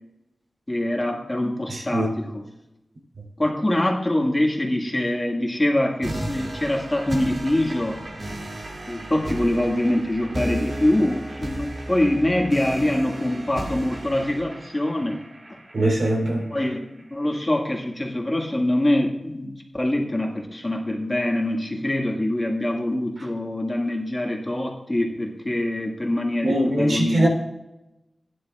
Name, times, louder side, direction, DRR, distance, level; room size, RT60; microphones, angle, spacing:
voice 1, 0.7-2.4 3.4-8.0 8.9-15.2 15.5-15.6 16.5-16.8 17.1-27.3, left 1 dB, 20° left, 0 dB, 1.9 m, -24 dB
voice 2, 1.7-2.1 15.7-16.5 26.4-27.3, right 1 dB, 75° right, -1 dB, 3.7 m, -22 dB
sound 1, 6.0-17.0, right 1 dB, 55° right, 2.7 m, -34 dB
16.5 x 10.0 x 2.5 m, 0.93 s
wide cardioid pair, 100°, 0 cm